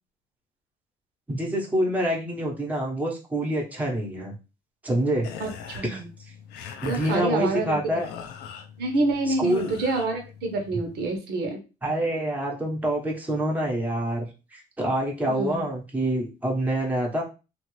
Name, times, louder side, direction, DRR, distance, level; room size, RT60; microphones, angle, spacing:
voice 1, 1.3-4.3 4.8-5.3 5.8-6.0 6.8-8.1 9.3-9.8 11.8-17.2, right 1 dB, 10° right, -2 dB, 0.9 m, -26 dB
sound 1, 5.2-11.1, left 7 dB, 85° left, 0.5 m, -42 dB
voice 2, 5.4-6.1 6.8-8.0 8.8-11.6 15.2-15.6, right 2 dB, 75° right, 3 dB, 1.0 m, -27 dB
2.8 x 2.5 x 3.1 m, 0.30 s
cardioid pair, 110°, 17 cm